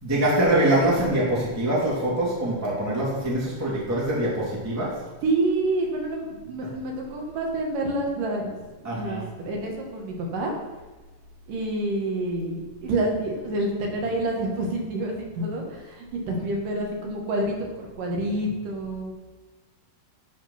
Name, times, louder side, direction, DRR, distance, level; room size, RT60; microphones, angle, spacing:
voice 1, 0.0-5.0 8.8-9.3, right 1 dB, 5° right, -6 dB, 2.0 m, -24 dB
voice 2, 5.2-8.6 8.8-10.5 11.5-19.1, right 2 dB, 60° right, 0 dB, 2.9 m, -28 dB
12.0 x 5.0 x 5.8 m, 1.2 s
omnidirectional pair, 4.7 m